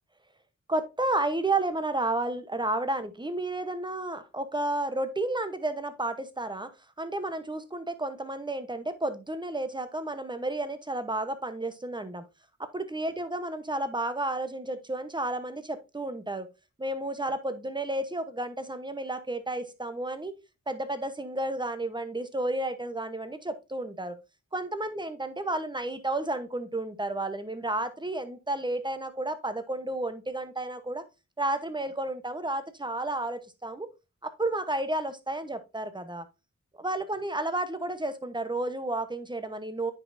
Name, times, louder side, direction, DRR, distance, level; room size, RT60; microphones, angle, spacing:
voice 1, 0.7-6.7 7.0-12.2 12.6-16.5 16.8-20.3 20.7-24.2 24.5-31.0 31.4-33.9 34.2-36.3 36.8-39.9, right 2 dB, 15° right, 10 dB, 1.0 m, -32 dB
9.3 x 5.3 x 2.6 m, 0.27 s
wide cardioid pair, 75°, 30 cm